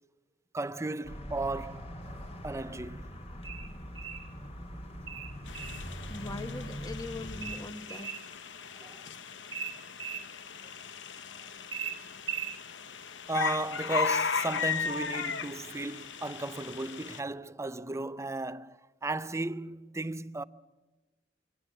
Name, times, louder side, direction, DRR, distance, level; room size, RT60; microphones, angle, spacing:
voice 1, 0.5-1.9 2.4-3.0 8.8-9.0 13.3-20.4, right 2 dB, 15° right, 0.6 m, -35 dB
sound 1, 1.0-7.6, equal, 35° left, 2.2 m, -42 dB
sound 2, 3.4-4.3 5.1-5.9 7.4-8.3 9.5-10.3 11.7-12.6, right 7 dB, 90° right, 1.8 m, -38 dB
sound 3, 5.5-17.2, left 6 dB, 75° left, 1.0 m, -37 dB
voice 2, 6.1-8.1, left 2 dB, 20° left, 1.3 m, -41 dB
23.0 x 17.5 x 7.1 m
head